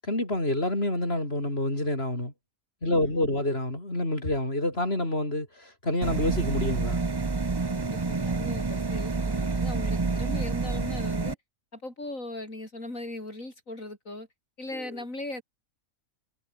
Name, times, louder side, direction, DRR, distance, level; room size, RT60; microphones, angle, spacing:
voice 1, 0.1-2.3 2.8-7.0 14.7-14.9, left 1 dB, 50° left, 6.7 m, -28 dB
voice 2, 2.9-3.4 7.7-11.4 11.7-14.3 14.6-15.4, left 2 dB, 75° left, 7.5 m, -39 dB
sound 1, 6.0-11.3, right 4 dB, 25° right, 0.7 m, -28 dB
omnidirectional pair, 1.4 m